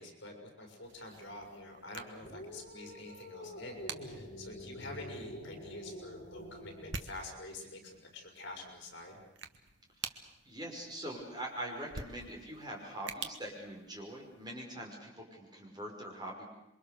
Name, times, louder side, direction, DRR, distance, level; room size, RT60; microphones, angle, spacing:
voice 1, 0.0-9.2, left 2 dB, 65° left, 2 dB, 6.0 m, -47 dB
sound 1, 0.8-14.5, right 5 dB, 70° right, 1.6 m, -50 dB
sound 2, 2.2-7.0, equal, 40° left, 6.7 m, -47 dB
voice 2, 10.0-16.5, right 1 dB, 20° right, -1 dB, 5.5 m, -43 dB
28.0 x 23.5 x 6.8 m, 0.88 s
head